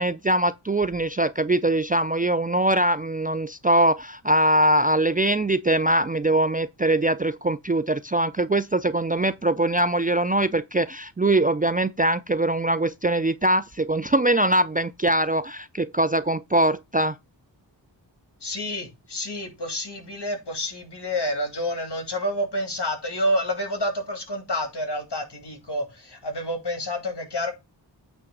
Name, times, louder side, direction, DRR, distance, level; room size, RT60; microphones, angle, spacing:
voice 1, 0.0-17.2, right 1 dB, 20° right, 0.4 m, -22 dB
voice 2, 18.4-27.5, left 1 dB, 60° left, 2.7 m, -29 dB
8.8 x 3.4 x 6.4 m
wide cardioid pair, 50°, 45 cm